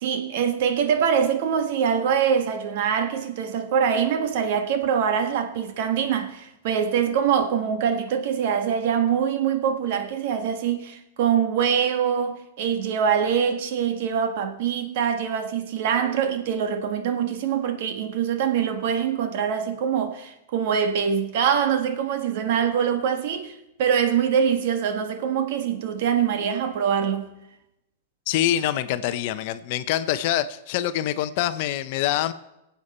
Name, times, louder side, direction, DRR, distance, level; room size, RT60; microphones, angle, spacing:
voice 1, 0.0-27.3, right 7 dB, 55° right, 1.4 m, -24 dB
voice 2, 28.3-32.3, left 12 dB, 45° left, 0.7 m, -25 dB
19.5 x 8.2 x 4.3 m
supercardioid pair, 155°, 0 cm